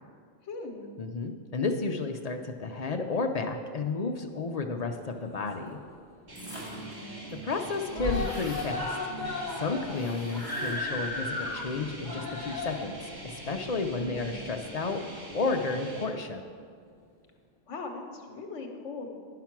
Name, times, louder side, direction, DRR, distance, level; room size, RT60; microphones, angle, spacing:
voice 1, 0.4-0.9 6.6-7.2 14.0-14.4 17.7-19.1, left 3 dB, 75° left, 3 dB, 1.2 m, -40 dB
voice 2, 1.0-5.8 7.4-9.0 9.5-12.9 13.2-16.4, left 3 dB, 50° left, 5 dB, 0.5 m, -32 dB
Screaming, 5.0-6.0 6.3-6.4 6.7-6.8 7.1-7.6 7.9-14.7 15.6-15.7, left 2 dB, 20° left, 1.0 m, -36 dB
sound 1, 6.3-6.9 7.3-7.4 7.6-8.7 9.9-11.0, right 1 dB, 25° right, 2.9 m, -44 dB
sound 2, 6.3-16.1, right 2 dB, 65° right, 2.1 m, -43 dB
10.5 x 5.8 x 5.9 m, 2.1 s
omnidirectional pair, 1.3 m